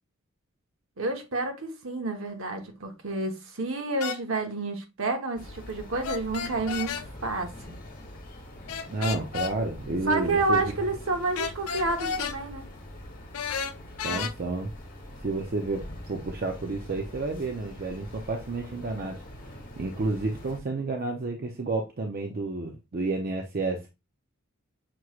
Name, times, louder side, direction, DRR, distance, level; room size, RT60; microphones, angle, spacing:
voice 1, 1.0-7.8 10.1-12.6, right 2 dB, 65° right, 1.0 m, -29 dB
sound 1, 4.0-4.2 6.0-7.0 8.7-9.5 11.3-12.4 13.3-14.3, left 6 dB, 90° left, 0.5 m, -32 dB
sound 2, 5.4-20.6, left 1 dB, 45° left, 1.1 m, -44 dB
voice 2, 8.9-10.6 14.0-14.7 15.2-19.2 19.8-23.9, right 3 dB, 45° right, 0.5 m, -30 dB
5.9 x 3.1 x 2.3 m
head